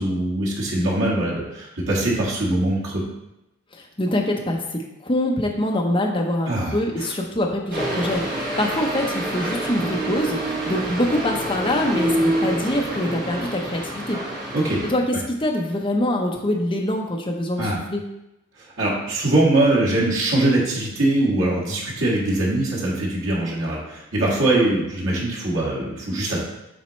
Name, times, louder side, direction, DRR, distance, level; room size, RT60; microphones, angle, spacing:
voice 1, 0.0-3.0 6.5-7.1 14.5-14.8 17.6-17.8 18.8-26.4, right 1 dB, 70° right, -6 dB, 2.0 m, -22 dB
voice 2, 3.7-14.2 14.8-18.1, left 1 dB, 25° left, 1 dB, 0.7 m, -24 dB
sound 1, 7.7-14.9, right 1 dB, 40° right, 1.3 m, -27 dB
7.2 x 4.3 x 3.2 m, 0.91 s
head